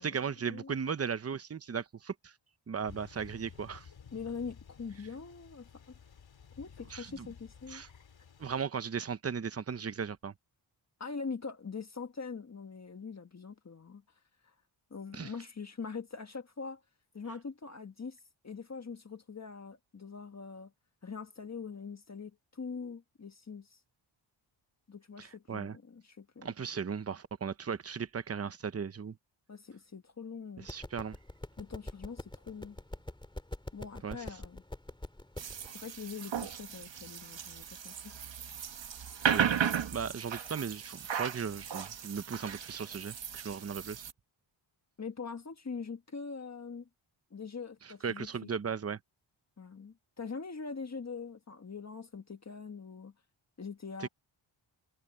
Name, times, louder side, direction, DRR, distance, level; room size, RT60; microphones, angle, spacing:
voice 1, 0.0-2.3 2.7-3.9 6.9-7.3 7.7-7.9 8.4-10.3 15.1-15.3 25.2-25.8 26.4-29.2 30.6-31.2 34.0-34.2 39.3-39.5 39.9-44.0 47.8-49.0 54.0-54.1, right 6 dB, 30° right, 0.8 m, -37 dB
sound 1, 2.9-8.7, left 7 dB, 65° left, 3.9 m, -54 dB
voice 2, 4.1-5.7 6.6-7.8 11.0-14.0 14.4-14.5 14.9-16.8 17.1-18.2 18.4-20.7 21.0-23.8 24.9-26.5 29.5-30.7 31.6-32.8 33.7-34.6 35.7-38.3 45.0-46.9 47.3-48.3 49.6-53.1 53.6-54.1, left 5 dB, 35° left, 1.5 m, -43 dB
sound 2, 30.6-35.7, left 1 dB, 10° left, 2.6 m, -44 dB
sound 3, 35.4-44.1, right 8 dB, 65° right, 1.8 m, -36 dB
wide cardioid pair, 115°, 48 cm